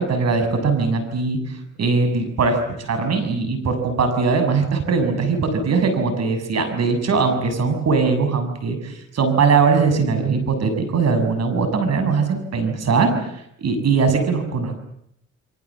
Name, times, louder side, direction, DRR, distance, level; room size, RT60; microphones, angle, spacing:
voice 1, 0.0-13.1 13.6-14.8, right 4 dB, 60° right, 8 dB, 7.0 m, -20 dB
29.0 x 23.5 x 7.5 m, 0.73 s
cardioid pair, 90°, 30 cm